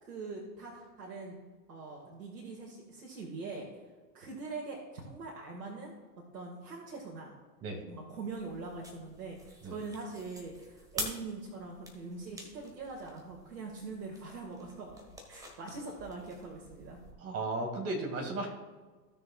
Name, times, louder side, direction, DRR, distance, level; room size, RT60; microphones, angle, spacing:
voice 1, 0.0-1.4 1.7-3.7 4.1-5.9 6.3-7.4 7.9-15.0 15.3-17.0, right 3 dB, 85° right, -3 dB, 2.1 m, -43 dB
sound 1, 8.3-17.1, equal, 5° right, 1.5 m, -47 dB
voice 2, 17.2-18.5, right 2 dB, 25° right, 2 dB, 2.2 m, -35 dB
16.0 x 6.6 x 2.4 m, 1.3 s
hypercardioid pair, 120°, 50 cm